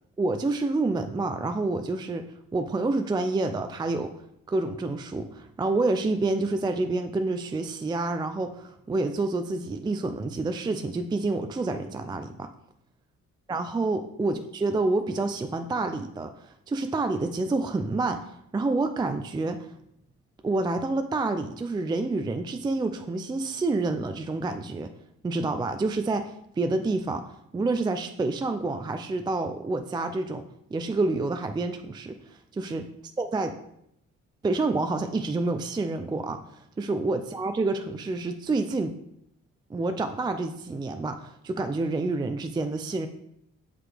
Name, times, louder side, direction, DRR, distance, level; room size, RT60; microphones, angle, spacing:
voice 1, 0.2-2.3 2.5-4.1 4.5-12.5 13.5-19.7 20.4-24.9 25.2-30.4 30.7-32.2 32.5-32.9 33.2-33.5 34.4-38.9 39.7-43.1, right 3 dB, 15° right, 7 dB, 0.4 m, -28 dB
5.8 x 4.8 x 3.3 m, 0.76 s
cardioid pair, 90°, 30 cm